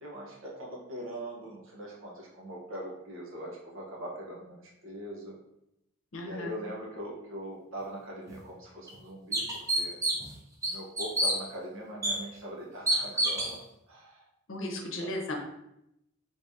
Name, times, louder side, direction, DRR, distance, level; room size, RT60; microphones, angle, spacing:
voice 1, 0.0-5.4 6.2-10.0 10.7-13.6 13.9-14.2 14.7-15.1, equal, 85° right, -2 dB, 1.0 m, -41 dB
voice 2, 6.1-6.6 14.5-15.4, left 1 dB, 70° left, 2 dB, 0.7 m, -36 dB
sound 1, 8.3-8.4 8.9-9.0 9.3-10.3 10.6-11.4 12.0-12.1 12.9-13.5, right 1 dB, 15° right, 0.6 m, -27 dB
3.5 x 3.2 x 2.7 m, 0.83 s
head